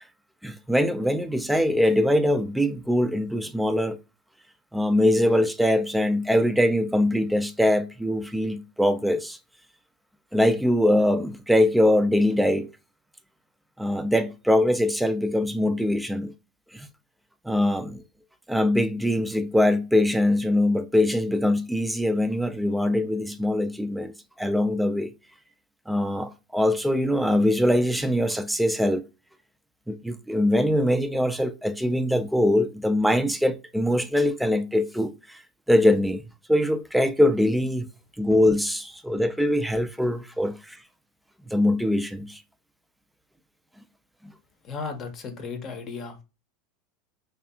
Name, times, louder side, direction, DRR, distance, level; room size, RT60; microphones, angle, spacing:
voice 1, 0.4-4.0 4.7-9.4 10.3-12.7 13.8-16.3 16.7-16.9 17.5-18.0 18.5-24.1 24.4-25.1 25.9-29.0 29.9-35.4 35.7-36.2 36.5-37.9 38.2-40.8 41.5-42.4, left 1 dB, 5° right, 0.4 m, -22 dB
voice 2, 44.6-46.2, left 4 dB, 40° left, 0.7 m, -35 dB
2.7 x 2.4 x 2.2 m
hypercardioid pair, 100°, 0 cm